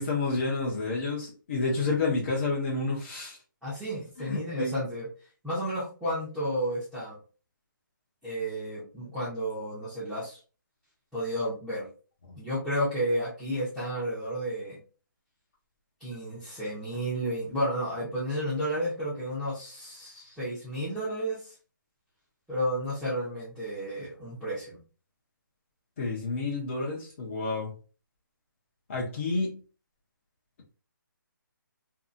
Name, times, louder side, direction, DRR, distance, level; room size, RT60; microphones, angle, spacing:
voice 1, 0.0-3.4 4.2-4.7 26.0-27.7 28.9-29.6, left 3 dB, 40° left, -4 dB, 0.7 m, -29 dB
voice 2, 3.6-5.1 5.4-7.2 8.2-10.4 11.1-11.9 12.3-14.8 16.0-21.5 22.5-24.8, equal, ahead, -14 dB, 0.8 m, -32 dB
2.7 x 2.6 x 2.5 m, 0.35 s
hypercardioid pair, 165°, 11 cm